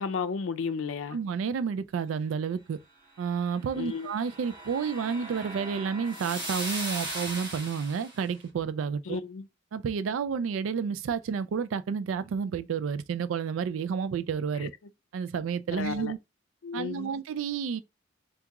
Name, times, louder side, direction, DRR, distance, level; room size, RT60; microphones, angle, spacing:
voice 1, 0.0-1.2 3.7-4.1 9.1-9.5 14.6-14.7 15.7-16.1 16.6-17.1, left 5 dB, 90° left, 0.4 m, -33 dB
voice 2, 1.1-2.8 3.2-9.2 9.7-14.7 15.1-16.2 16.7-17.8, right 6 dB, 90° right, 0.3 m, -30 dB
sound 1, 3.6-8.2, right 1 dB, 25° right, 1.4 m, -38 dB
2.9 x 2.3 x 3.4 m
head